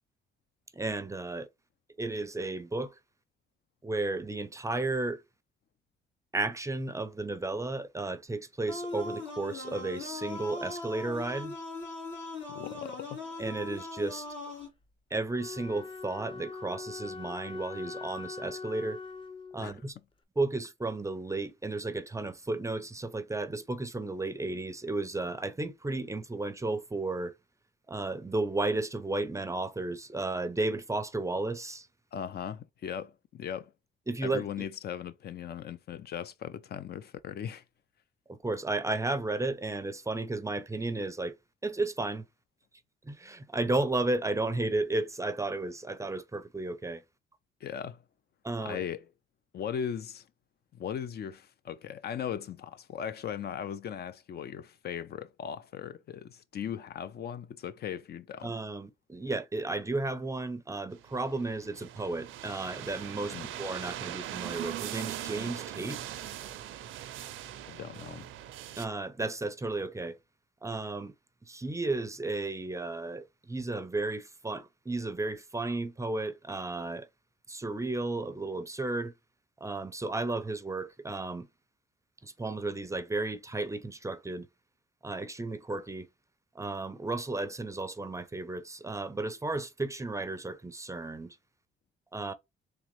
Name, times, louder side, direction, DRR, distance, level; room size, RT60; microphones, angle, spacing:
voice 1, 0.7-1.5 2.0-2.9 3.8-5.2 6.3-11.5 13.4-14.3 15.1-19.0 19.5-19.9 20.4-27.3 27.9-31.9 34.1-34.4 38.3-41.4 41.6-42.2 43.0-47.0 48.4-48.8 58.4-66.0 68.8-70.2 70.6-71.1 71.5-77.1 77.5-79.1 79.6-81.5 82.2-84.5 85.0-86.1 86.5-91.4 92.1-92.3, right 2 dB, 15° right, 0.5 m, -33 dB
sound 1, 8.7-14.7, left 3 dB, 70° left, 2.4 m, -40 dB
voice 2, 12.5-13.2 19.6-19.8 32.1-33.7 34.2-37.6 47.6-48.0 48.6-49.1 49.5-50.3 50.7-58.5 63.3-63.5 67.7-68.3, left 8 dB, 55° left, 0.5 m, -38 dB
Wind instrument woodwind instrument, 15.3-19.8, left 4 dB, 25° left, 0.8 m, -42 dB
sound 2, 61.0-68.9, right 12 dB, 85° right, 0.5 m, -40 dB
3.7 x 3.2 x 3.0 m
cardioid pair, 90°, 20 cm